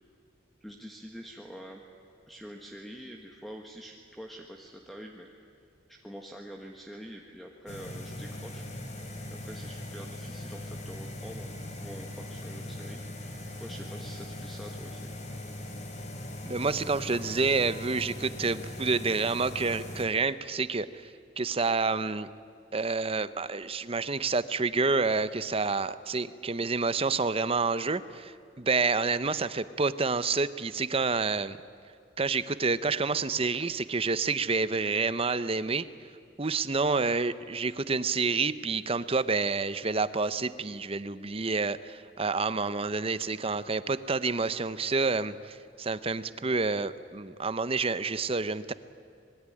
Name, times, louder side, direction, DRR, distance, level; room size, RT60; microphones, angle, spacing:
voice 1, 0.6-1.8 2.3-5.3 5.9-8.6 9.3-13.0 13.3-15.1, equal, ahead, 1 dB, 1.5 m, -46 dB
sound 1, 7.7-20.0, left 1 dB, 40° left, 3.3 m, -40 dB
voice 2, 16.4-22.3 22.7-31.6 32.2-35.8 36.4-48.7, right 4 dB, 30° right, 14 dB, 0.8 m, -28 dB
26.0 x 21.0 x 9.9 m, 2.4 s
head